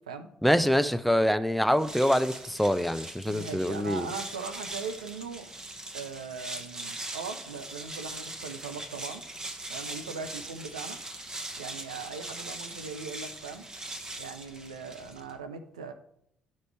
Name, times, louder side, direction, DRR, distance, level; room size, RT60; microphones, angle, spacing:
voice 1, 0.4-4.1, equal, ahead, 0.5 m, -25 dB
sound 1, 1.7-15.4, right 2 dB, 20° right, 1.1 m, -41 dB
voice 2, 3.3-5.5 5.9-9.2 9.7-11.0 11.6-13.6 14.2-15.9, right 5 dB, 85° right, 0.6 m, -39 dB
11.5 x 5.3 x 3.3 m
figure-of-eight pair, 50°, 4 cm